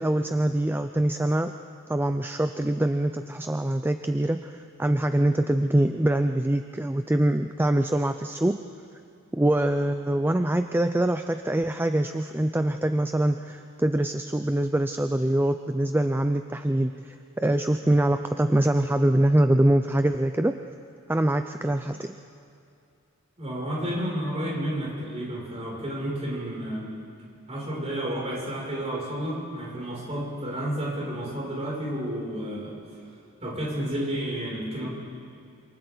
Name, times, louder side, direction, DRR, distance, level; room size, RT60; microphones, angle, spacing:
voice 1, 0.0-1.5 1.9-8.6 9.3-20.6 21.1-22.2, right 1 dB, 10° right, 8 dB, 0.4 m, -24 dB
voice 2, 23.4-26.9 27.5-32.8 33.4-34.9, right 1 dB, 30° right, -5 dB, 6.5 m, -31 dB
27.5 x 27.0 x 4.0 m, 2.5 s
head